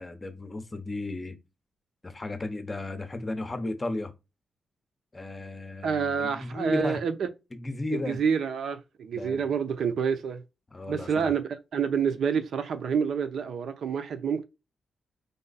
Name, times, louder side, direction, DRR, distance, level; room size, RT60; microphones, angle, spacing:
voice 1, 0.0-1.4 2.0-4.1 5.1-7.0 7.5-8.2 9.1-9.5 10.7-11.3, left 2 dB, 25° left, 0.9 m, -34 dB
voice 2, 5.8-7.1 7.9-10.4 10.9-14.4, right 6 dB, 75° right, 0.7 m, -28 dB
5.2 x 2.2 x 4.1 m
cardioid pair, 90°, 0 cm